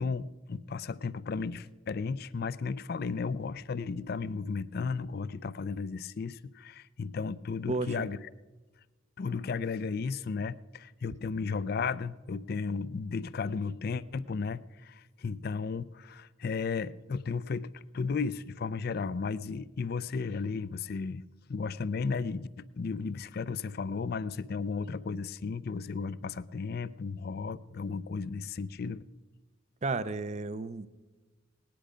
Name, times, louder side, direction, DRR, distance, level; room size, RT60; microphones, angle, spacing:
voice 1, 0.0-8.2 9.2-21.2 21.5-29.0, left 4 dB, 50° left, 17 dB, 0.4 m, -34 dB
voice 2, 29.8-30.9, right 3 dB, 35° right, 13 dB, 0.5 m, -32 dB
18.5 x 10.5 x 5.0 m, 1.2 s
head